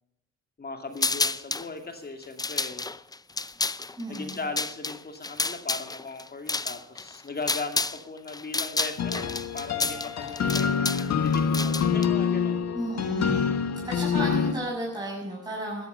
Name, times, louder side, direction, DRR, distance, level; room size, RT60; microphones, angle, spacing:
voice 1, 0.6-2.9 4.1-12.8, left 3 dB, 30° left, 5 dB, 2.6 m, -38 dB
sound 1, 1.0-1.7 2.2-8.0 8.3-12.1, left 3 dB, 15° left, 0.6 m, -30 dB
voice 2, 4.0-4.4 12.7-13.5 13.8-15.9, right 1 dB, 15° right, -4 dB, 6.9 m, -33 dB
sound 2, 9.0-14.5, left 6 dB, 60° left, 1.8 m, -26 dB
15.0 x 13.0 x 7.0 m, 0.88 s
cardioid pair, 90°, 30 cm